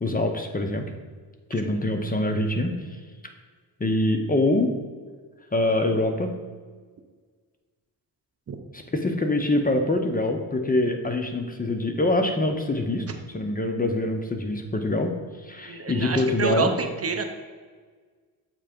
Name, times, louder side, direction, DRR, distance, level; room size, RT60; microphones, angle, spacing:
voice 1, 0.0-0.8 1.5-2.7 3.8-4.7 5.5-6.3 8.7-13.0 13.3-16.7, left 2 dB, 20° left, 5 dB, 0.6 m, -24 dB
voice 2, 15.7-17.2, right 5 dB, 35° right, 5 dB, 0.7 m, -28 dB
7.5 x 3.3 x 5.1 m, 1.5 s
cardioid pair, 105°, 39 cm